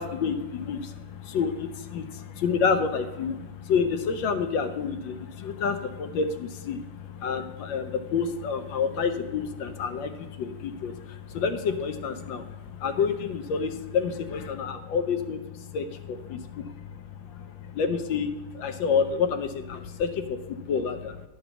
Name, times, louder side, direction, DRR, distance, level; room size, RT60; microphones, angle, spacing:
voice 1, 0.0-21.2, left 6 dB, 75° left, 8 dB, 1.3 m, -29 dB
10.5 x 4.1 x 6.7 m, 1.1 s
omnidirectional pair, 2.2 m